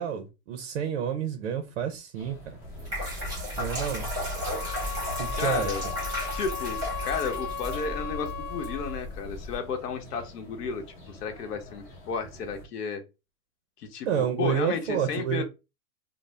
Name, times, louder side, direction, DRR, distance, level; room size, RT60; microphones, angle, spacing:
voice 1, 0.0-2.6 3.6-4.1 5.2-5.7 14.1-15.4, right 8 dB, 50° right, 0.5 m, -29 dB
sound 1, 2.1-12.7, left 1 dB, 35° left, 0.8 m, -48 dB
sound 2, 2.6-9.6, equal, 10° right, 0.7 m, -34 dB
sound 3, 4.3-9.1, left 7 dB, 15° left, 0.4 m, -36 dB
voice 2, 5.4-5.8 6.3-6.8 7.0-13.0 13.8-15.4, left 5 dB, 80° left, 0.9 m, -33 dB
2.5 x 2.0 x 3.1 m
supercardioid pair, 160°, 46 cm